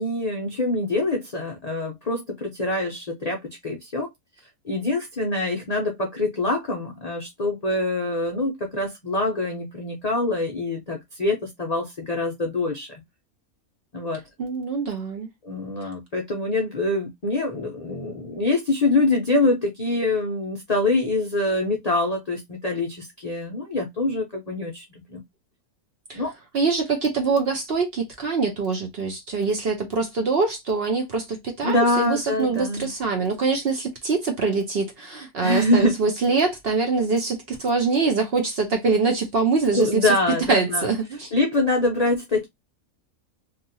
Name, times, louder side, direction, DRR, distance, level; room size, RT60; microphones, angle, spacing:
voice 1, 0.0-4.1 4.6-12.9 13.9-14.2 15.4-25.2 26.1-26.3 31.6-32.9 35.4-35.9 39.7-40.9 41.3-42.5, left 2 dB, 50° left, 0.4 m, -25 dB
voice 2, 14.4-15.3 15.8-15.9 26.1-26.2 26.5-40.1 40.5-41.3, right 4 dB, 55° right, 0.7 m, -24 dB
2.8 x 2.5 x 2.6 m
omnidirectional pair, 1.5 m